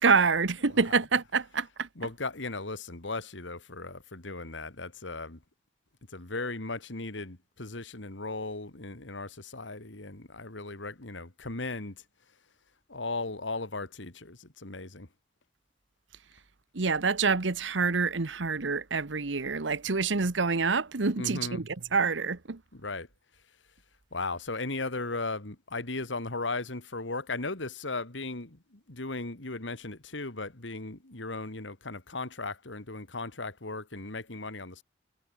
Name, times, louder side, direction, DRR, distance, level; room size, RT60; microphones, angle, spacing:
voice 1, 0.0-1.9 16.7-21.6 21.9-22.6, right 4 dB, 85° right, 1.2 m, -27 dB
voice 2, 2.0-5.4 6.1-12.0 12.9-15.1 21.1-21.6 22.7-23.1 24.1-34.8, left 3 dB, 85° left, 2.5 m, -37 dB
head